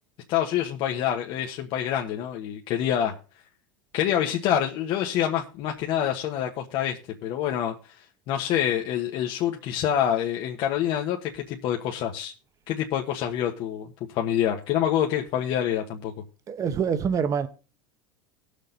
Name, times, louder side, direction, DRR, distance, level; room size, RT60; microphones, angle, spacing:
voice 1, 0.3-3.1 3.9-12.3 12.7-16.1, left 10 dB, 55° left, 1.3 m, -27 dB
voice 2, 16.5-17.5, right 7 dB, 30° right, 1.0 m, -25 dB
18.5 x 6.6 x 4.0 m
supercardioid pair, 105°, 10 cm